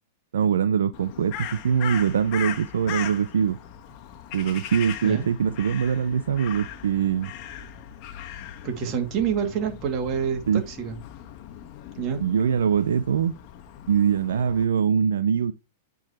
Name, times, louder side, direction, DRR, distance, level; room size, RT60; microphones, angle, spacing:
voice 1, 0.3-3.6 4.3-7.3 10.5-10.6 12.2-13.3 13.9-15.5, right 7 dB, 80° right, 0.5 m, -23 dB
Crow, 0.9-14.6, left 10 dB, 45° left, 1.2 m, -39 dB
voice 2, 8.6-11.0 12.0-12.2, right 7 dB, 40° right, 2.2 m, -27 dB
9.0 x 3.9 x 4.2 m
hypercardioid pair, 115°, 0 cm